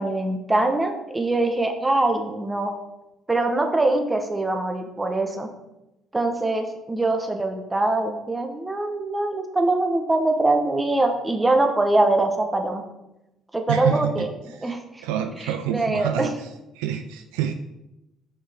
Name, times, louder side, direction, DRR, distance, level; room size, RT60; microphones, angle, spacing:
voice 1, 0.0-2.7 3.3-5.5 6.1-12.8 13.5-14.3 14.6-15.0 15.4-16.3, right 2 dB, 20° right, 4 dB, 1.2 m, -23 dB
voice 2, 13.7-14.3 14.6-14.7 15.0-16.5 16.8-17.5, right 9 dB, 75° right, 7 dB, 0.4 m, -27 dB
6.3 x 5.7 x 3.6 m, 0.94 s
hypercardioid pair, 55°, 0 cm